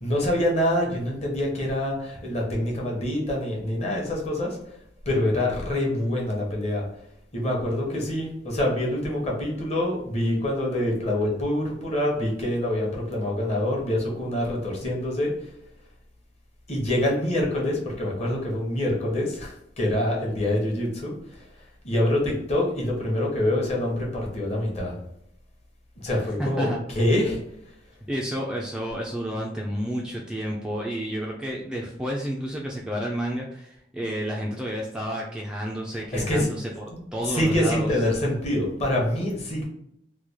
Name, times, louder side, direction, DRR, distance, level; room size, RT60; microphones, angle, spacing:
voice 1, 0.0-4.6 5.0-6.8 7.3-15.3 16.7-21.5 21.8-25.0 26.0-27.4 35.9-36.5 36.9-37.0 37.2-39.6, left 1 dB, 35° left, -2 dB, 0.9 m, -25 dB
voice 2, 26.1-26.8 28.1-36.8 37.1-37.9, equal, 5° right, -2 dB, 0.3 m, -30 dB
3.2 x 2.3 x 3.4 m, 0.76 s
head